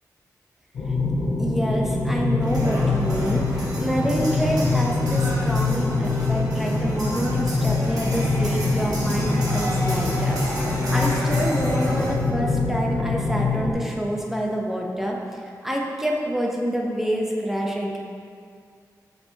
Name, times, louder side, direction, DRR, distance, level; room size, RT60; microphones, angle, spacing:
sound 1, 0.7-13.7, left 3 dB, 85° left, 0.9 m, -24 dB
voice 1, 1.4-15.2 15.6-18.0, equal, 5° right, -1 dB, 0.6 m, -27 dB
sound 2, 2.4-12.1, right 1 dB, 70° right, 1.3 m, -32 dB
6.3 x 5.7 x 2.7 m, 2.3 s
wide cardioid pair, 130°, 7 cm